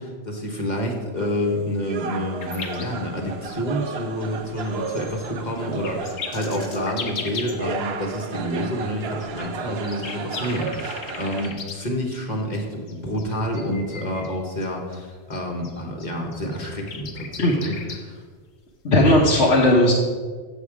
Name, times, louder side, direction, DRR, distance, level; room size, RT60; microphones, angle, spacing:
voice 1, 0.0-18.2, equal, 35° left, 1 dB, 1.4 m, -28 dB
sound 1, 1.2-11.5, right 5 dB, 60° right, 0.9 m, -34 dB
sound 2, 2.4-7.7 7.9-8.0 8.8-11.8 12.3-14.3 14.6-18.0 19.1-19.2, left 5 dB, 80° left, 1.4 m, -37 dB
voice 2, 17.4-17.7 18.8-19.9, left 1 dB, 60° left, -3 dB, 1.3 m, -17 dB
7.8 x 7.4 x 4.8 m, 1.5 s
omnidirectional pair, 1.3 m